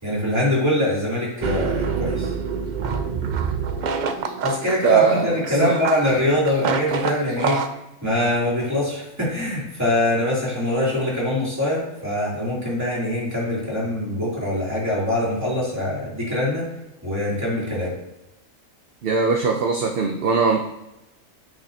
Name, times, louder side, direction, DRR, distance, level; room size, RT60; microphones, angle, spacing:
voice 1, 0.0-2.3 4.4-7.6 8.0-16.7 17.0-17.9, left 1 dB, 10° right, -7 dB, 2.8 m, -23 dB
sound 1, 1.4-7.7, right 5 dB, 75° right, 0.4 m, -26 dB
voice 2, 4.8-5.8 19.0-20.6, right 5 dB, 55° right, 3 dB, 0.7 m, -20 dB
9.0 x 5.7 x 2.8 m, 0.92 s
omnidirectional pair, 1.4 m